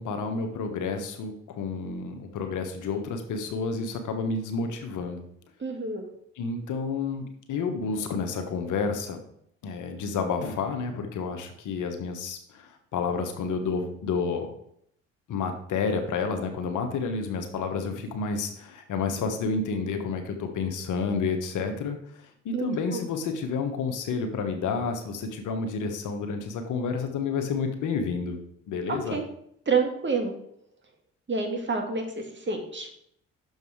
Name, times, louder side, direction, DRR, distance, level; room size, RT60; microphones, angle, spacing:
voice 1, 0.0-5.2 6.4-9.2 9.6-14.5 15.3-22.0 22.4-28.4 28.7-29.2, left 4 dB, 65° left, 6 dB, 1.2 m, -30 dB
voice 2, 5.6-6.0 22.5-23.0 28.9-29.2 29.7-30.3 31.3-32.0 32.3-32.9, right 4 dB, 35° right, 4 dB, 1.9 m, -28 dB
6.5 x 5.3 x 4.8 m, 0.69 s
hypercardioid pair, 50°, 33 cm